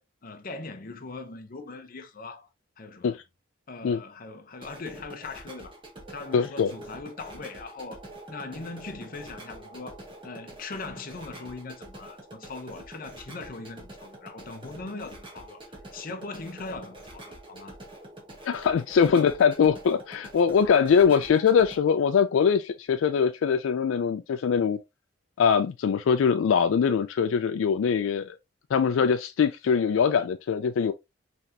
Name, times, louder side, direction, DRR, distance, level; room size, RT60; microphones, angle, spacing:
voice 1, 0.0-2.5 2.8-3.2 3.7-5.7 6.1-15.6 15.9-17.8, left 3 dB, 45° left, 0.7 m, -40 dB
sound 1, 4.5-21.8, right 1 dB, 25° right, 1.1 m, -46 dB
voice 2, 6.3-6.7 18.4-24.8 25.4-28.4 28.7-30.9, left 6 dB, 80° left, 0.3 m, -22 dB
4.1 x 3.3 x 2.7 m
head